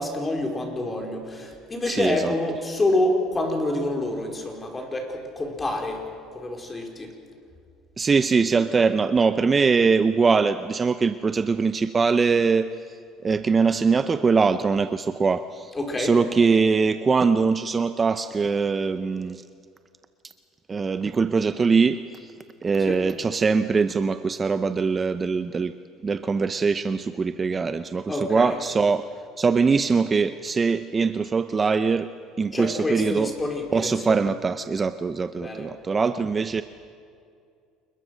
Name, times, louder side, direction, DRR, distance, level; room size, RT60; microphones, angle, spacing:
voice 1, 0.0-6.1 6.3-7.1 15.7-16.1 22.9-23.0 28.1-28.5 32.5-34.3 35.4-35.7, left 2 dB, 20° left, 3 dB, 4.6 m, -27 dB
voice 2, 1.8-2.3 8.0-12.7 13.2-19.4 20.7-22.3 22.6-25.7 26.0-29.1 29.4-32.1 32.4-33.3 33.7-36.6, right 5 dB, 25° right, 11 dB, 0.7 m, -22 dB
28.0 x 21.5 x 6.5 m, 2.3 s
supercardioid pair, 100°, 0 cm